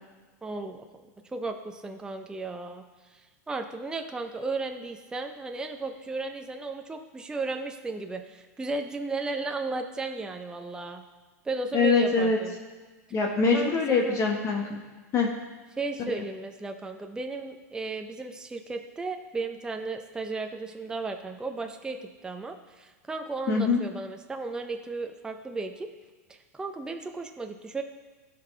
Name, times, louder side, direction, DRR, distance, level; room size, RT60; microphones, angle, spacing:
voice 1, 0.4-0.9 1.3-2.8 3.1-11.0 11.4-12.6 13.5-14.2 15.2-15.4 15.8-25.9 26.3-27.8, right 3 dB, 10° right, 4 dB, 0.6 m, -35 dB
voice 2, 11.7-12.4 13.1-14.8 15.1-15.3 23.5-23.8, left 4 dB, 35° left, 0 dB, 1.3 m, -23 dB
16.0 x 5.4 x 3.3 m, 1.4 s
hypercardioid pair, 115°, 9 cm